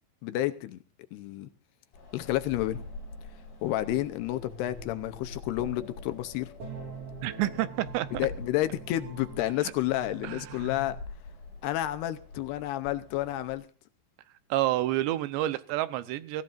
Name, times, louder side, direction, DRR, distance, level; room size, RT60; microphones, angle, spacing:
voice 1, 0.2-0.8 1.1-1.5 2.1-2.9 3.6-6.5 8.2-11.0 11.6-13.7, left 14 dB, 75° left, 2.7 m, -30 dB
Wind, 1.9-13.6, left 3 dB, 55° left, 6.8 m, -46 dB
sound 1, 2.8-10.9, right 3 dB, 45° right, 4.8 m, -46 dB
voice 2, 7.2-8.1 9.6-9.7 10.2-10.7 14.5-16.4, right 14 dB, 80° right, 3.1 m, -29 dB
23.5 x 15.0 x 2.6 m
omnidirectional pair, 5.1 m